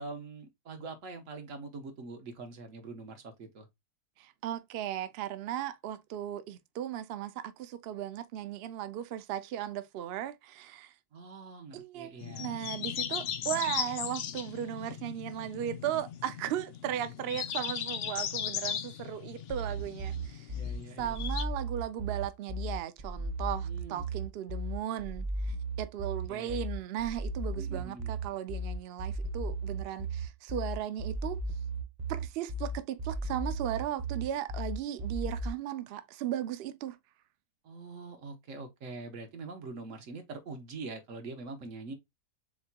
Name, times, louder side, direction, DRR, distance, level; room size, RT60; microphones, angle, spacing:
voice 1, 0.0-3.7 11.1-12.5 17.3-17.4 20.1-20.2 20.5-21.2 23.6-24.1 26.3-26.6 27.5-28.1 37.6-41.9, right 3 dB, 60° right, 1.4 m, -44 dB
voice 2, 4.2-10.9 11.7-20.5 21.0-31.4 32.1-37.0, right 11 dB, 80° right, 0.5 m, -36 dB
sound 1, 12.2-21.4, left 8 dB, 70° left, 0.6 m, -37 dB
sound 2, 19.5-35.5, right 2 dB, 35° right, 0.8 m, -36 dB
6.9 x 2.9 x 2.2 m
omnidirectional pair, 1.6 m